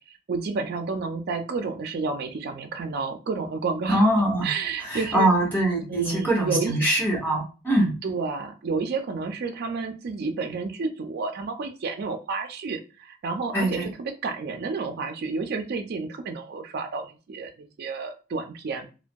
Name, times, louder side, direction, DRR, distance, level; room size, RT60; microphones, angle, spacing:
voice 1, 0.3-4.0 4.4-5.3 5.9-6.8 8.0-18.9, right 4 dB, 50° right, 5 dB, 0.4 m, -30 dB
voice 2, 3.9-4.5 4.8-7.9 13.5-13.9, right 1 dB, 10° left, -5 dB, 1.4 m, -23 dB
2.6 x 2.2 x 2.3 m, 0.32 s
head